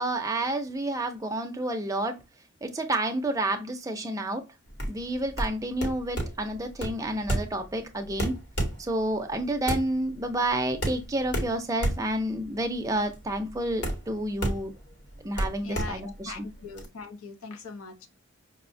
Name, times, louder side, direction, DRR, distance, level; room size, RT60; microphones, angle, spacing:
voice 1, 0.0-2.2 2.6-4.4 4.9-8.4 8.8-14.7 15.2-16.5, right 1 dB, 15° right, 0.4 m, -30 dB
sound 1, 4.7-16.9, right 1 dB, 55° left, 1.0 m, -32 dB
voice 2, 15.6-18.1, left 4 dB, 85° left, 0.7 m, -41 dB
5.3 x 2.1 x 2.5 m
head